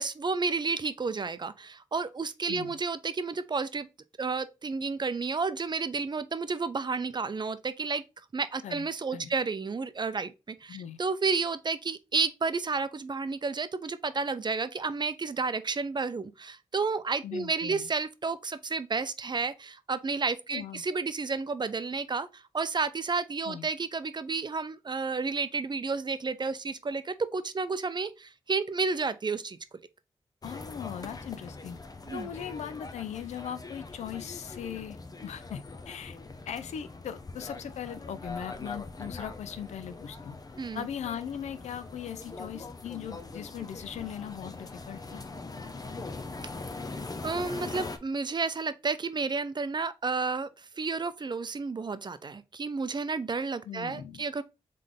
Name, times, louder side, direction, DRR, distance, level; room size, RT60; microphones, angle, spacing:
voice 1, 0.0-3.9 4.2-8.0 8.3-29.6 32.1-32.3 40.6-40.9 47.2-54.4, right 4 dB, 40° right, 0.5 m, -31 dB
voice 2, 8.6-9.3 10.7-11.0 17.2-17.9 20.5-20.8 23.5-23.7 30.4-31.8 32.1-35.0 35.2-36.2 36.5-40.4 40.7-45.2 53.6-54.3, left 9 dB, 90° left, 0.5 m, -39 dB
sound 1, 30.4-48.0, left 3 dB, 35° left, 0.7 m, -42 dB
3.8 x 3.3 x 3.6 m
cardioid pair, 45°, 11 cm